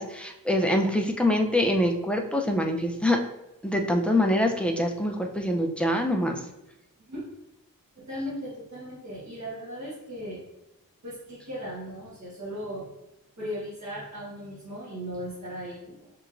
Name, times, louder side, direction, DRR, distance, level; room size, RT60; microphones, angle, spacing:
voice 1, 0.0-3.2 3.6-6.4, left 1 dB, 5° left, 2 dB, 0.4 m, -25 dB
voice 2, 7.9-10.4 11.0-12.8 13.4-16.1, equal, 55° right, -9 dB, 1.4 m, -37 dB
5.7 x 2.9 x 2.5 m, 0.91 s
wide cardioid pair, 130°, 34 cm